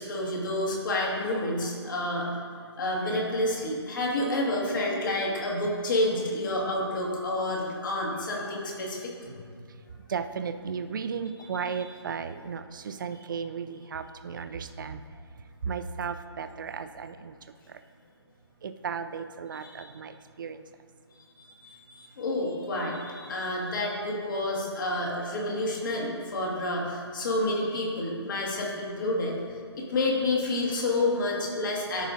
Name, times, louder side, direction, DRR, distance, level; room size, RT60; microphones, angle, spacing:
voice 1, 0.0-2.3 2.8-9.3 11.5-11.9 19.5-19.9 21.4-29.4 29.7-32.1, left 1 dB, 45° left, -3 dB, 2.0 m, -29 dB
voice 2, 10.1-15.0 15.6-17.4 17.7-17.8 18.6-20.6, right 6 dB, 50° right, 9 dB, 0.5 m, -35 dB
14.0 x 5.0 x 2.7 m, 2.2 s
hypercardioid pair, 155°, 14 cm